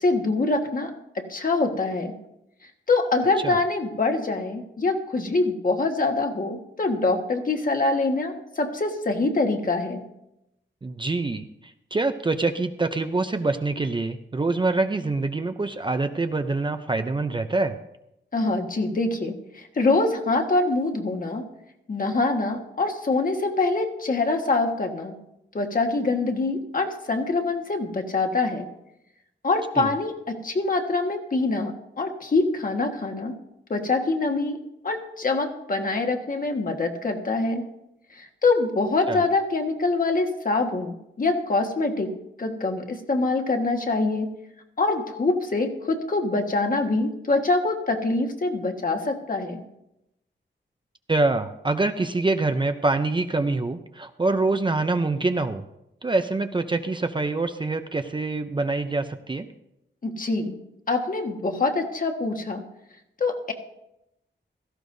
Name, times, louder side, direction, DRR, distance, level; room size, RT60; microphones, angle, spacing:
voice 1, 0.0-2.1 2.9-10.0 18.3-21.4 21.9-25.1 25.5-28.7 29.4-33.4 33.7-34.6 34.8-37.6 38.1-42.1 42.4-44.3 44.8-49.6 60.0-60.5 60.9-62.6 63.2-63.5, left 3 dB, 45° left, 3 dB, 1.5 m, -24 dB
voice 2, 10.8-17.8 29.8-29.9 39.1-39.2 51.1-55.6 56.0-59.5, right 3 dB, 25° right, 8 dB, 0.5 m, -25 dB
17.0 x 14.0 x 2.7 m, 0.84 s
wide cardioid pair, 130°, 20 cm